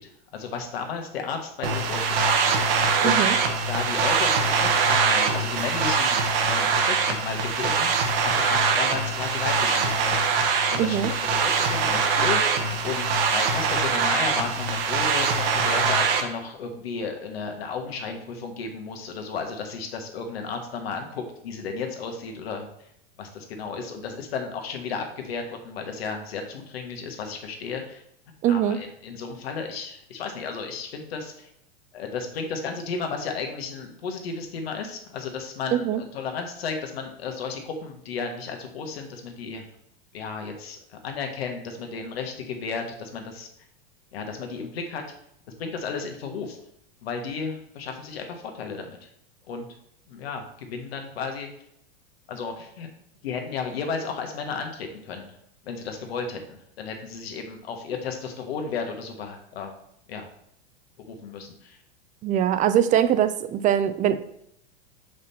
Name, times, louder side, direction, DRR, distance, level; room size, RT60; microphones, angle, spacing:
voice 1, 0.0-3.2 3.7-10.2 10.7-12.4 12.7-22.7 23.2-28.0 28.5-31.5 31.9-39.6 40.1-43.5 44.1-45.0 45.6-46.6 47.0-49.1 49.5-49.7 50.1-51.5 52.3-52.9 53.2-55.3 55.6-59.7 60.1-60.3 61.1-61.8, left 5 dB, 85° left, 4 dB, 1.5 m, -33 dB
sound 1, 1.6-16.2, right 5 dB, 70° right, 1.1 m, -23 dB
voice 2, 3.0-3.4 10.8-11.1 28.4-28.8 35.7-36.0 62.2-64.2, right 10 dB, 25° right, 12 dB, 0.4 m, -22 dB
5.6 x 5.1 x 4.2 m, 0.73 s
supercardioid pair, 125°, 30 cm